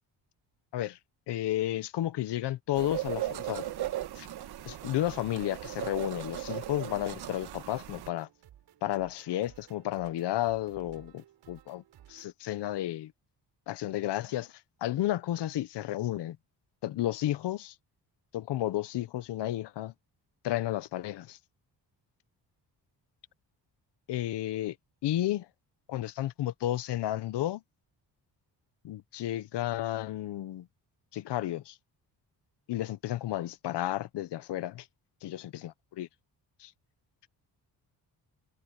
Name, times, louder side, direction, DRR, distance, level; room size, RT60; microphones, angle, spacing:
voice 1, 1.3-3.7 4.2-4.3 4.6-8.3 8.8-11.8 12.1-13.1 13.7-14.5 14.8-16.4 16.8-17.7 18.3-19.9 20.4-21.4 24.1-24.7 25.0-25.5 25.9-27.6 28.8-30.7 31.1-31.8 32.7-34.9 35.2-36.1 36.6-36.7, left 13 dB, 80° left, 1.1 m, -32 dB
sound 1, 2.8-8.1, right 13 dB, 70° right, 1.4 m, -37 dB
sound 2, 6.9-12.3, right 11 dB, 85° right, 5.2 m, -57 dB
cardioid pair, 90°, 41 cm